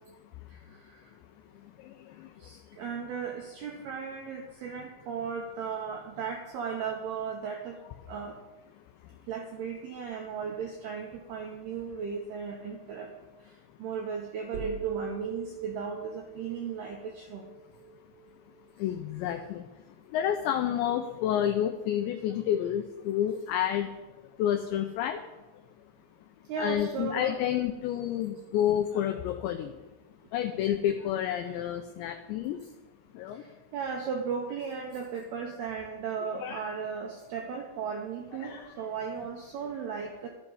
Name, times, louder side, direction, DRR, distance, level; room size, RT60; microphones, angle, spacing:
voice 1, 0.5-1.1 2.4-8.4 9.3-13.1 13.4-17.5 26.5-27.4 33.3-40.3, right 6 dB, 85° right, 2 dB, 2.3 m, -36 dB
voice 2, 1.6-2.5 18.8-19.7 20.1-23.9 24.4-25.2 26.6-29.8 30.3-32.6 33.1-33.4 36.4-36.6 38.4-38.7, left 10 dB, 90° left, 7 dB, 2.5 m, -30 dB
sound 1, 14.5-18.6, right 5 dB, 50° right, 1.1 m, -39 dB
12.5 x 11.5 x 5.5 m, 1.2 s
omnidirectional pair, 6.0 m